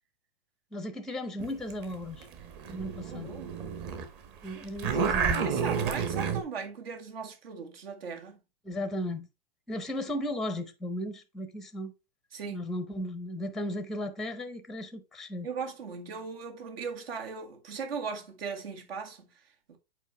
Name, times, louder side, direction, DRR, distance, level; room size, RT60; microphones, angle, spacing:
voice 1, 0.7-2.3 2.7-3.3 4.4-5.5 8.6-9.3 9.7-11.9 12.5-15.5, left 1 dB, ahead, 0.7 m, -35 dB
sound 1, 1.4-4.0 4.4-6.4, right 6 dB, 35° right, 1.4 m, -30 dB
voice 2, 3.0-3.5 5.4-8.4 12.3-12.6 15.4-19.8, right 5 dB, 70° right, 2.0 m, -38 dB
8.2 x 4.5 x 3.3 m
hypercardioid pair, 125°, 31 cm